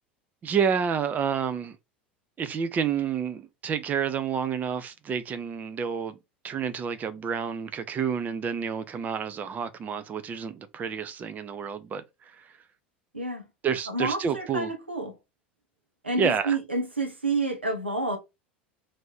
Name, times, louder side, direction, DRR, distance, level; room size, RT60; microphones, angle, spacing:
voice 1, 0.4-1.8 2.4-6.2 6.4-12.5 13.6-14.7 16.2-16.6, right 7 dB, 30° right, 0.5 m, -29 dB
voice 2, 13.1-13.5 13.9-15.2 16.0-18.2, right 3 dB, 90° right, 0.9 m, -29 dB
3.0 x 2.6 x 4.3 m
figure-of-eight pair, 75°, 6 cm